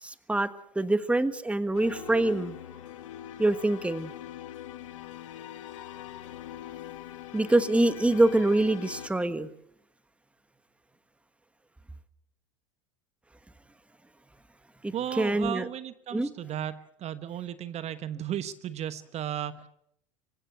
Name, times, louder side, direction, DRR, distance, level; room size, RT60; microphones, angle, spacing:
voice 1, 0.0-2.6 3.4-4.1 7.3-9.5 14.8-15.7 16.1-16.3, right 2 dB, 5° right, 13 dB, 1.4 m, -25 dB
sound 1, 1.7-9.1, left 12 dB, 75° left, 1.8 m, -42 dB
voice 2, 14.9-16.7 17.0-19.7, right 10 dB, 40° right, 13 dB, 1.2 m, -35 dB
26.0 x 15.5 x 8.1 m, 0.73 s
hypercardioid pair, 80°, 16 cm